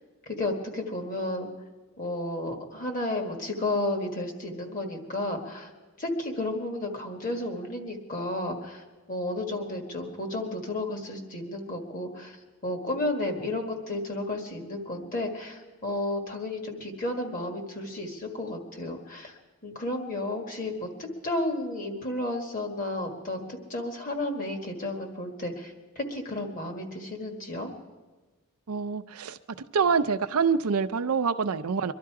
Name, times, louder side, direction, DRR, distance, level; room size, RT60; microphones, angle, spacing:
voice 1, 0.3-1.5 2.0-5.7 6.0-8.8 9.1-12.4 12.6-19.3 19.6-20.9 21.2-23.5 23.7-27.7, left 1 dB, 35° left, 4 dB, 1.7 m, -32 dB
voice 2, 28.7-29.4 29.7-31.9, right 5 dB, 80° right, 9 dB, 0.5 m, -26 dB
23.0 x 12.0 x 4.8 m, 1.3 s
head